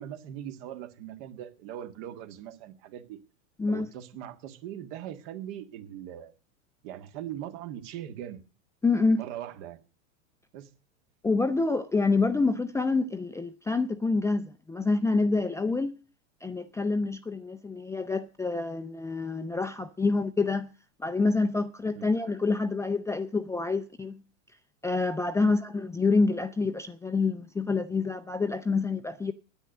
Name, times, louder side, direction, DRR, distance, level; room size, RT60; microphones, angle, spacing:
voice 1, 0.0-3.2 3.7-6.3 6.8-8.4 9.2-9.8 10.5-10.7 22.0-22.1 25.4-25.6, right 11 dB, 55° right, 1.7 m, -40 dB
voice 2, 8.8-9.2 11.2-15.9 16.4-20.7 21.0-24.2 24.8-29.3, left 3 dB, 5° left, 0.5 m, -27 dB
10.0 x 9.1 x 7.7 m
hypercardioid pair, 105°, 41 cm